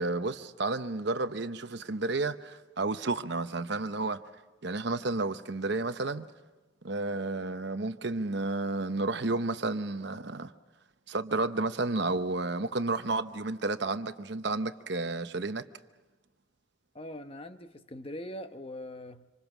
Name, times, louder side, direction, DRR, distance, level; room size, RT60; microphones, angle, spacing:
voice 1, 0.0-4.2 4.6-6.3 6.8-10.5 11.1-15.6, right 3 dB, 55° right, 0.9 m, -31 dB
voice 2, 16.9-19.3, left 1 dB, 30° left, 1.0 m, -42 dB
26.5 x 26.0 x 6.1 m
head